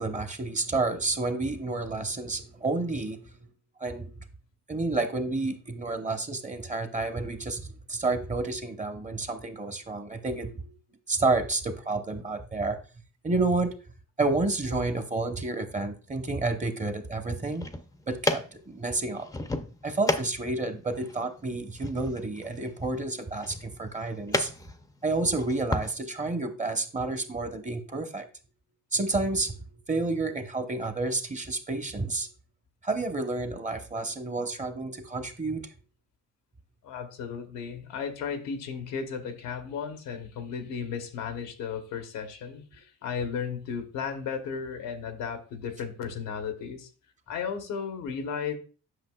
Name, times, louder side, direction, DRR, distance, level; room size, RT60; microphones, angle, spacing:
voice 1, 0.0-3.5 3.8-4.1 4.7-10.7 11.1-12.8 13.2-13.7 14.2-17.6 18.1-19.3 19.8-24.5 25.0-28.3 28.9-29.6 29.9-32.3 32.8-35.6, right 3 dB, 25° right, 7 dB, 1.0 m, -30 dB
sound 1, 17.4-25.9, left 2 dB, 10° left, 0.6 m, -34 dB
voice 2, 36.8-46.9 47.3-48.5, left 6 dB, 90° left, 6 dB, 1.1 m, -35 dB
7.8 x 5.7 x 2.3 m, 0.37 s
cardioid pair, 90°, 30 cm